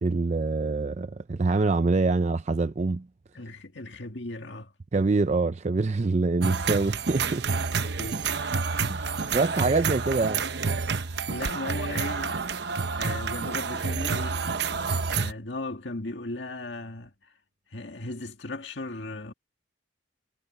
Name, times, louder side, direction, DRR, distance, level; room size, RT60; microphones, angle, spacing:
voice 1, 0.0-3.1 4.9-7.5 8.8-10.4, right 3 dB, 35° right, 0.5 m, -25 dB
voice 2, 3.3-4.7 8.0-8.2 11.3-12.7 13.0-14.7 15.1-17.1 17.7-19.3, left 2 dB, 70° left, 2.0 m, -37 dB
sound 1, 6.4-15.3, right 5 dB, 60° right, 0.9 m, -29 dB
head